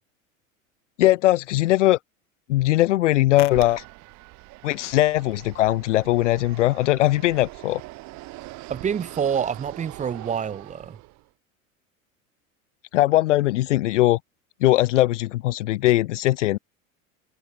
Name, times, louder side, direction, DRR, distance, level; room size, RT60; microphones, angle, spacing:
voice 1, 1.0-2.0 2.5-3.8 4.6-7.8 12.9-14.2 14.6-16.6, left 16 dB, 60° left, 0.5 m, -20 dB
Fixed-wing aircraft airplane, 3.5-11.3, right 22 dB, 45° right, 2.9 m, -42 dB
voice 2, 8.7-11.0, right 7 dB, 15° right, 1.0 m, -27 dB
figure-of-eight pair, 80°, 41 cm